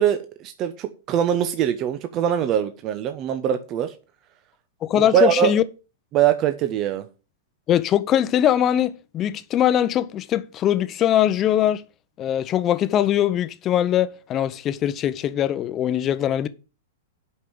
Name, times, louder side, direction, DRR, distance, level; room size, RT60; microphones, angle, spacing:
voice 1, 0.0-3.9 4.9-5.6 6.1-7.1, right 10 dB, 35° right, 0.9 m, -22 dB
voice 2, 4.8-5.6 7.7-11.8 12.2-16.5, left 11 dB, 30° left, 0.9 m, -21 dB
8.4 x 5.4 x 7.8 m
hypercardioid pair, 110°, 0 cm